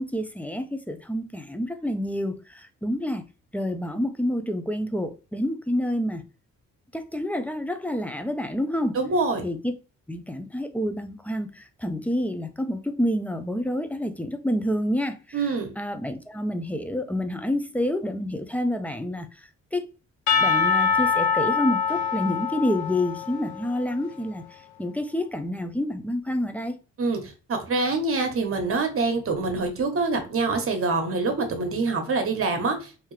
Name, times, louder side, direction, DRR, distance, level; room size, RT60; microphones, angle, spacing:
voice 1, 0.0-3.3 3.5-6.2 6.9-9.0 9.4-9.7 10.1-15.4 15.8-19.3 19.7-19.8 20.4-24.4 24.8-26.7, left 1 dB, 5° left, 0.5 m, -28 dB
voice 2, 8.9-9.4 15.3-15.7 27.0-32.9, right 3 dB, 45° right, 1.2 m, -25 dB
Percussion / Church bell, 20.3-24.1, left 6 dB, 70° left, 0.7 m, -24 dB
3.5 x 2.8 x 3.2 m
cardioid pair, 90°, 30 cm